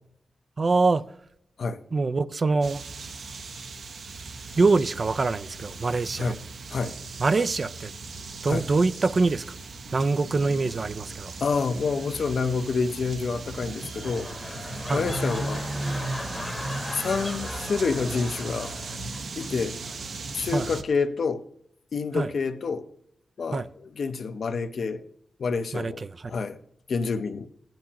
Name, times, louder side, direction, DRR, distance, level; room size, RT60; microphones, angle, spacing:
voice 1, 0.6-1.0 1.9-2.8 4.6-6.3 7.2-7.9 8.4-9.4 9.9-11.3 14.9-15.0 20.5-20.7 22.1-22.3 23.5-23.7 25.7-26.3, right 3 dB, 35° right, 0.4 m, -24 dB
sound 1, 2.6-20.8, right 3 dB, 70° right, 0.9 m, -37 dB
voice 2, 11.4-14.3 14.9-15.7 16.9-18.7 19.4-19.8 20.3-21.4 21.9-22.9 23.4-25.0 25.4-26.0 26.3-26.6 26.9-27.5, left 4 dB, 60° left, 0.7 m, -28 dB
sound 2, 13.6-19.5 19.8-20.2, left 2 dB, 20° left, 1.0 m, -38 dB
17.0 x 10.5 x 2.9 m
wide cardioid pair, 165°, 0 cm